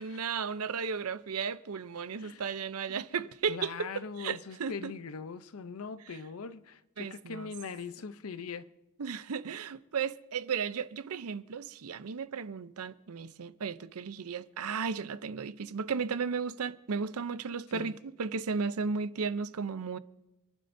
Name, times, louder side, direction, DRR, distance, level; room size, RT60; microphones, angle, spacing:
voice 1, 0.0-3.9 4.2-4.9 6.1-6.2 7.0-7.5 9.0-20.0, right 5 dB, 80° right, 0.6 m, -35 dB
voice 2, 2.9-8.7 17.7-17.9, left 5 dB, 75° left, 0.6 m, -41 dB
26.5 x 11.0 x 2.6 m
head